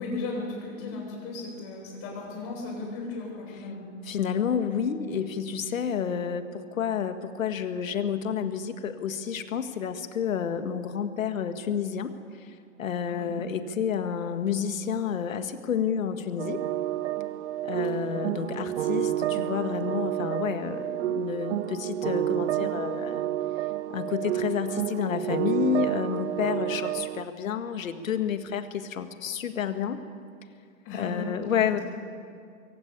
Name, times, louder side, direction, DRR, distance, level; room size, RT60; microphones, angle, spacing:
voice 1, 0.0-3.9 13.1-13.3 17.9-18.2 30.8-31.8, left 3 dB, 30° left, -8 dB, 7.7 m, -36 dB
voice 2, 4.0-16.6 17.6-23.3 23.9-30.0 30.9-31.8, left 8 dB, 75° left, 8 dB, 1.9 m, -30 dB
sound 1, 16.4-27.3, right 13 dB, 55° right, 0.7 m, -30 dB
23.0 x 16.5 x 8.7 m, 2.3 s
hypercardioid pair, 135°, 40 cm